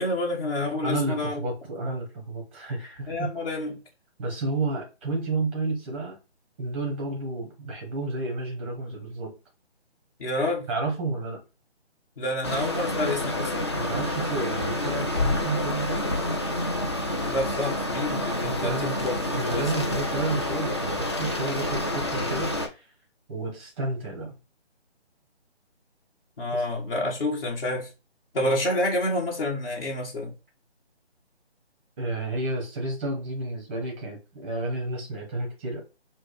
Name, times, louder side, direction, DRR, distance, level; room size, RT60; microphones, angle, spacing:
voice 1, 0.0-1.4 1.8-2.0 3.1-3.8 10.2-10.7 12.2-13.5 17.3-19.1 19.4-19.7 26.4-27.9 28.3-30.3, left 1 dB, 55° left, 1.5 m, -28 dB
voice 2, 0.8-3.3 4.2-6.2 6.6-9.3 10.7-11.4 13.7-16.2 18.4-18.9 19.3-22.9 23.3-24.3 26.5-26.6 32.0-35.8, right 2 dB, 10° right, 0.7 m, -31 dB
sound 1, 12.4-22.7, left 1 dB, 25° left, 0.5 m, -28 dB
5.0 x 2.1 x 4.0 m
figure-of-eight pair, 155°, 33 cm